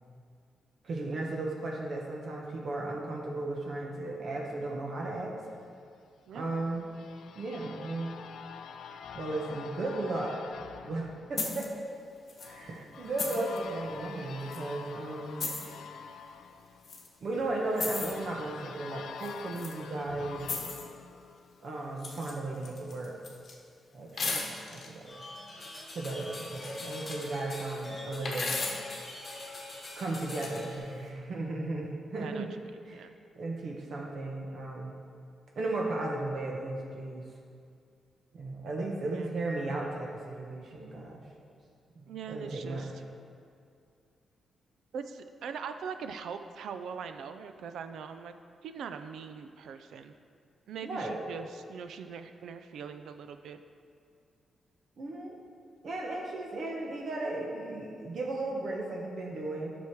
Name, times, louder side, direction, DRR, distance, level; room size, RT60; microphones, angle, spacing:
voice 1, 0.8-5.4 6.3-6.9 7.3-8.1 9.1-10.4 10.8-11.7 12.4-15.6 17.2-20.5 21.6-23.1 23.9-25.2 25.9-28.5 29.4-29.6 30.0-32.5 32.9-33.0 33.3-34.9 35.6-37.2 38.3-41.2 41.9-42.9 50.8-51.2 55.0-55.3 55.8-59.7, right 2 dB, 50° right, -1 dB, 1.0 m, -35 dB
sound 1, 6.3-22.0, left 6 dB, 80° left, 0.4 m, -47 dB
sound 2, 11.4-11.7 12.3-12.5 13.2-13.6 14.5-14.6 15.4-15.7 16.8-17.1 17.8-18.1 19.2-19.7 20.4-20.9 22.0-22.4 22.6-23.5 24.2-24.9 26.2-27.3 28.3-28.9 30.1-30.7, left 3 dB, 40° left, 1.1 m, -36 dB
sound 3, 25.1-30.8, left 1 dB, 20° left, 2.1 m, -42 dB
voice 2, 32.1-32.5 32.9-33.1 39.1-39.3 42.1-42.9 44.9-48.3 48.6-50.1 50.7-53.6, right 6 dB, 85° right, 9 dB, 0.5 m, -41 dB
10.5 x 6.2 x 4.6 m, 2.3 s
wide cardioid pair, 170°, 0 cm